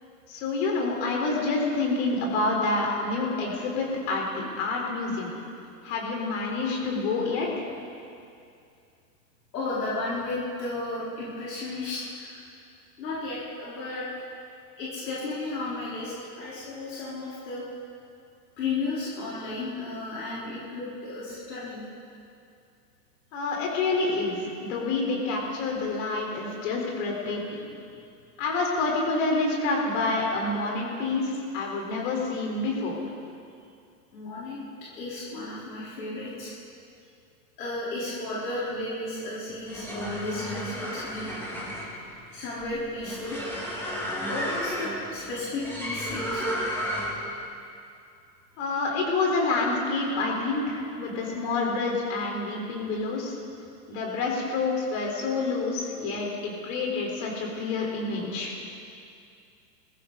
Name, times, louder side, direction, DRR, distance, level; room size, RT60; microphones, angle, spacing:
voice 1, 0.3-5.3 5.8-7.6 23.3-27.7 28.4-33.0 48.6-53.4 53.9-58.5, left 3 dB, 50° left, -1 dB, 4.4 m, -28 dB
voice 2, 9.5-12.4 13.0-14.1 14.8-17.6 18.6-21.8 34.1-34.6 34.9-36.5 37.6-41.3 42.3-43.4 44.3-46.6, left 2 dB, 75° left, -8 dB, 4.2 m, -33 dB
sound 1, 39.5-47.3, equal, 5° left, 2.8 m, -33 dB
21.5 x 14.5 x 4.1 m, 2.5 s
hypercardioid pair, 120°, 50 cm